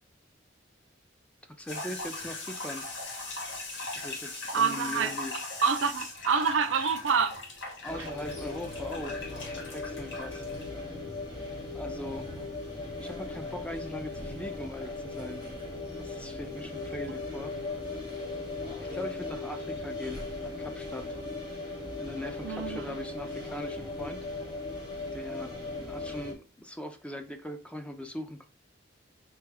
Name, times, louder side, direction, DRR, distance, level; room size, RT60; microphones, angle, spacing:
voice 1, 1.6-2.9 3.9-5.4 7.8-9.2 9.6-10.4 11.7-12.3 13.0-15.5 15.9-17.5 18.8-21.2 22.0-24.3 25.1-25.5 25.9-28.5, left 1 dB, 5° left, 0.4 m, -40 dB
sound 1, 1.7-10.7, left 2 dB, 75° left, 1.0 m, -39 dB
voice 2, 4.5-5.1 5.6-7.3 8.0-8.1 22.4-22.9, right 6 dB, 75° right, 0.5 m, -27 dB
sound 2, 7.8-26.3, left 3 dB, 25° left, 1.1 m, -38 dB
4.4 x 2.3 x 3.3 m
head